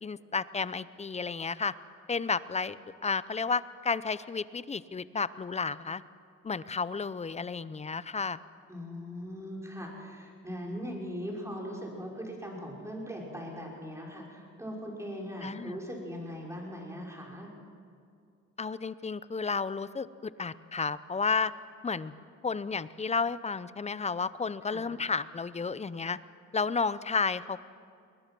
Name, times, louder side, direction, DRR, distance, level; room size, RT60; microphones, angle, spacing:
voice 1, 0.0-1.7 2.1-6.0 6.4-8.4 15.4-15.8 18.6-21.5 21.8-22.1 22.4-26.2 26.5-27.6, left 5 dB, 20° left, 16 dB, 0.6 m, -32 dB
voice 2, 8.7-17.5 24.7-24.9, equal, 10° right, -2 dB, 5.6 m, -40 dB
21.5 x 19.5 x 6.1 m, 2.3 s
cardioid pair, 90°, 30 cm